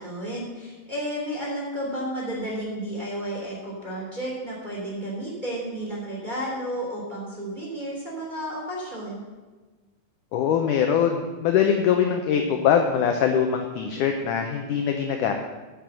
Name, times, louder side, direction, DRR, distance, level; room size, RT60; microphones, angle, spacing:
voice 1, 0.0-9.2, right 1 dB, 15° right, -5 dB, 2.9 m, -32 dB
voice 2, 10.3-15.3, left 8 dB, 75° left, 4 dB, 2.0 m, -22 dB
10.5 x 6.6 x 7.8 m, 1.3 s
omnidirectional pair, 4.3 m